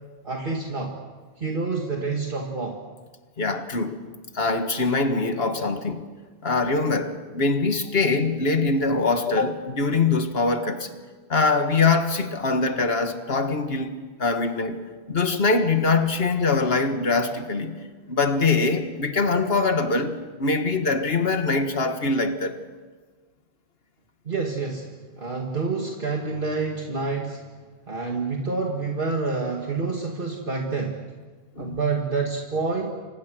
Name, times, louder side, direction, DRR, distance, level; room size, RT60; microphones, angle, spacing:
voice 1, 0.2-1.0 1.4-2.8 24.3-24.9 25.2-27.4 27.9-31.0 31.6-32.9, right 4 dB, 55° right, 2.1 m, -28 dB
voice 2, 3.4-4.0 4.3-6.0 6.4-10.9 11.3-14.8 15.1-17.8 18.1-22.6 31.6-31.8, left 3 dB, 70° left, 2.0 m, -23 dB
30.0 x 25.0 x 6.3 m
omnidirectional pair, 1.1 m